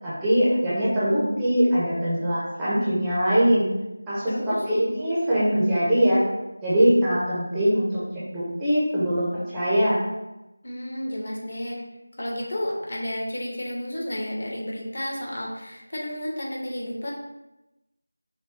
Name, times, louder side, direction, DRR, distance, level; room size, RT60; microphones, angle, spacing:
voice 1, 0.0-3.7 4.1-6.2 6.6-8.0 8.3-10.0, equal, 5° right, -11 dB, 0.6 m, -22 dB
voice 2, 4.3-4.6 10.6-11.8 12.2-17.1, equal, 50° left, -3 dB, 1.2 m, -31 dB
5.9 x 2.2 x 4.1 m, 0.98 s
figure-of-eight pair, 175°, 0 cm